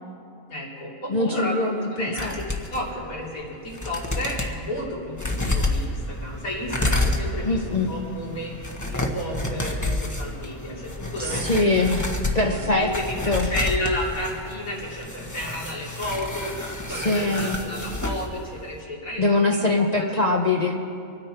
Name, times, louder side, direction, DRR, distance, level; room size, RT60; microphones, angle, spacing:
voice 1, 0.5-11.9 12.4-16.5 16.9-19.4 19.8-20.1, left 1 dB, 90° left, -5 dB, 3.7 m, -32 dB
voice 2, 1.1-2.3 7.4-7.9 11.2-12.9 13.3-13.5 16.9-17.6 19.2-20.8, left 2 dB, 35° left, 1 dB, 0.7 m, -23 dB
sound 1, 2.2-2.8 3.4-3.5 3.7-4.5 5.1-18.3 18.6-18.7, left 1 dB, 15° left, 1.0 m, -29 dB
26.0 x 9.8 x 4.4 m, 2.4 s
omnidirectional pair, 1.4 m